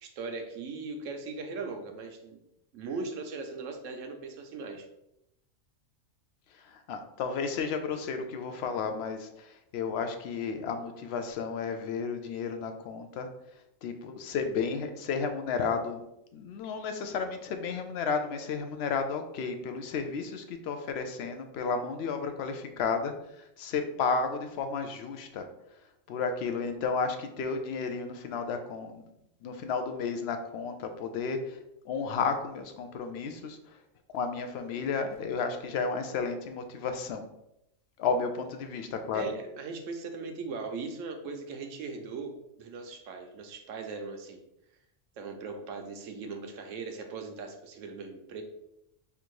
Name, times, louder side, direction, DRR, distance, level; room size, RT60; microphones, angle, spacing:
voice 1, 0.0-2.4 2.7-4.9 39.1-42.3 42.6-44.4 45.2-48.4, right 4 dB, 80° right, 4 dB, 1.1 m, -39 dB
voice 2, 6.6-13.3 13.8-16.0 16.3-25.5 26.1-29.1 29.4-31.6 31.9-33.6 34.1-37.2 38.0-39.2, left 5 dB, 65° left, 7 dB, 0.7 m, -32 dB
3.4 x 2.5 x 4.6 m, 0.82 s
omnidirectional pair, 1.3 m